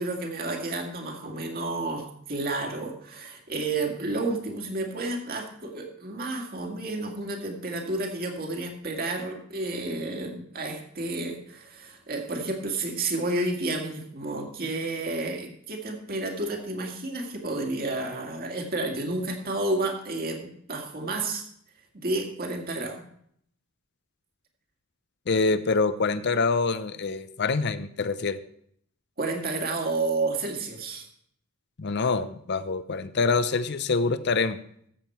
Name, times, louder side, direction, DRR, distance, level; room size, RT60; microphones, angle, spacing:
voice 1, 0.0-21.4 22.0-23.0 29.2-31.1, right 2 dB, 45° right, 3 dB, 2.0 m, -31 dB
voice 2, 25.3-28.4 31.8-34.6, left 4 dB, 55° left, 13 dB, 0.7 m, -25 dB
14.0 x 7.3 x 4.4 m, 0.67 s
head